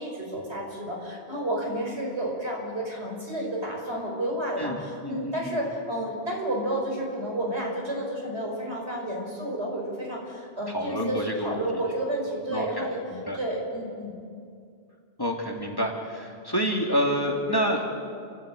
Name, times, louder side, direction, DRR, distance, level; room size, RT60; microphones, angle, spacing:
voice 1, 0.0-13.0 13.4-14.1, right 1 dB, 75° right, -1 dB, 6.1 m, -31 dB
voice 2, 4.6-5.6 10.7-11.6 12.5-13.4 15.2-17.9, equal, 20° left, -1 dB, 2.6 m, -28 dB
29.0 x 14.0 x 9.1 m, 2.3 s
omnidirectional pair, 1.1 m